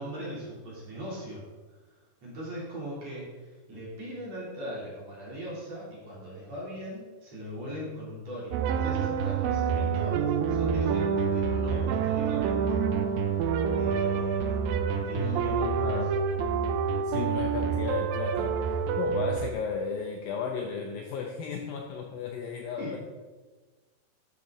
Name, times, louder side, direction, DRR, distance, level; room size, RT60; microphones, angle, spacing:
voice 1, 0.0-1.8 2.2-12.9 13.8-16.0 22.8-23.0, equal, 40° right, -7 dB, 3.7 m, -40 dB
sound 1, 8.5-19.5, right 6 dB, 90° right, 2.0 m, -27 dB
voice 2, 15.2-16.1 17.0-23.0, left 6 dB, 80° left, 2 dB, 2.1 m, -34 dB
12.0 x 6.9 x 3.8 m, 1.3 s
omnidirectional pair, 4.8 m